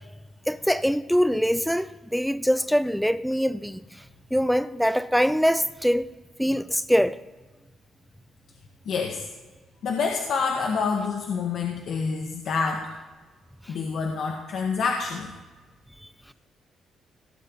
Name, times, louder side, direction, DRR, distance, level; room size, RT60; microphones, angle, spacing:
voice 1, 0.5-3.8 4.3-6.1 6.4-7.2, equal, ahead, 0.6 m, -23 dB
voice 2, 8.8-9.2 9.8-12.8 13.7-15.3, left 5 dB, 70° left, 1.6 m, -27 dB
17.0 x 8.9 x 3.9 m
cardioid pair, 90°, 0 cm